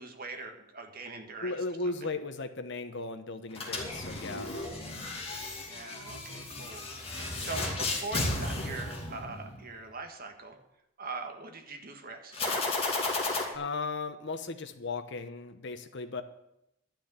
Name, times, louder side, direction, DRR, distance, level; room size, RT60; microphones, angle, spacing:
voice 1, 0.0-1.6 2.0-2.1 5.7-10.6 11.0-12.8, right 3 dB, 45° right, 5 dB, 1.5 m, -42 dB
voice 2, 1.4-4.6 13.5-16.2, left 3 dB, 60° left, 9 dB, 1.0 m, -36 dB
sound 1, 3.5-9.7 12.3-13.4, left 2 dB, 30° left, 2.6 m, -34 dB
12.0 x 6.2 x 8.9 m, 0.84 s
head